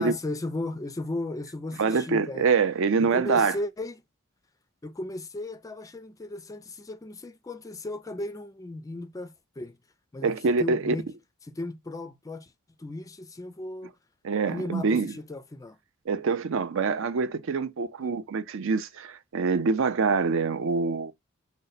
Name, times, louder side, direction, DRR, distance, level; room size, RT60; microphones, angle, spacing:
voice 1, 0.0-2.5 3.0-4.0 4.8-9.8 10.1-11.1 11.4-12.5 12.8-13.9 14.5-15.8 18.0-18.2, left 2 dB, 15° left, 0.3 m, -36 dB
voice 2, 1.8-3.6 10.2-11.0 14.2-15.1 16.1-21.1, right 4 dB, 65° right, 0.5 m, -25 dB
5.3 x 2.1 x 3.9 m
head